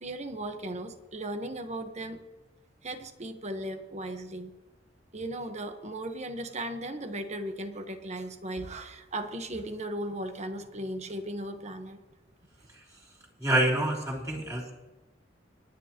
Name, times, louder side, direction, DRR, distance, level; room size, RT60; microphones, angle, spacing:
voice 1, 0.0-2.2 2.8-4.5 5.1-12.0, right 1 dB, 40° right, 7 dB, 1.3 m, -37 dB
voice 2, 13.4-14.7, right 1 dB, 20° right, -3 dB, 3.1 m, -27 dB
26.0 x 10.0 x 3.0 m, 1.1 s
head